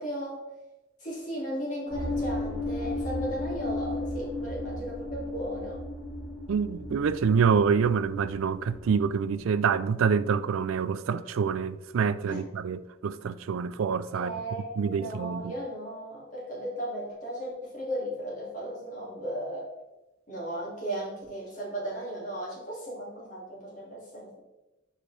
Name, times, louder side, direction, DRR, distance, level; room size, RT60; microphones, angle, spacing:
voice 1, 0.0-0.4 1.0-5.8 12.3-12.6 14.1-19.7 20.3-24.4, right 1 dB, 40° left, 2.5 m, -36 dB
sound 1, 1.9-9.4, left 1 dB, ahead, 2.4 m, -35 dB
voice 2, 6.5-14.3 14.8-15.5, right 6 dB, 80° right, 0.4 m, -26 dB
7.6 x 4.8 x 3.3 m
head